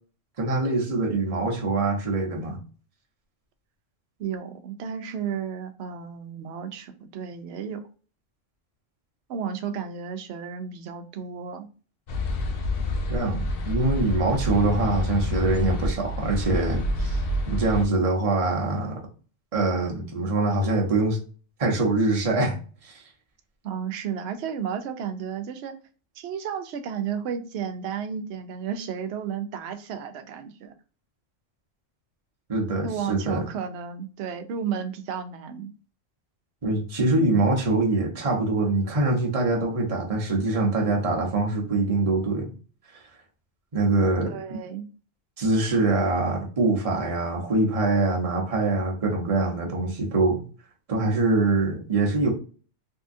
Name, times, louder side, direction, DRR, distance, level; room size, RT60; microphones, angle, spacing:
voice 1, 0.4-2.6 13.1-17.2 17.5-19.0 19.5-21.2 21.6-23.0 32.5-33.4 36.6-42.5 42.9-43.0 43.7-44.6 45.4-50.4 50.9-52.3, right 2 dB, 30° right, 0.9 m, -24 dB
voice 2, 4.2-7.9 9.3-11.7 23.6-25.8 26.1-30.7 32.8-35.7 44.2-44.9, right 7 dB, 65° right, 0.8 m, -33 dB
sound 1, 12.1-17.9, left 1 dB, 60° left, 0.7 m, -28 dB
3.7 x 2.7 x 2.6 m
omnidirectional pair, 1.3 m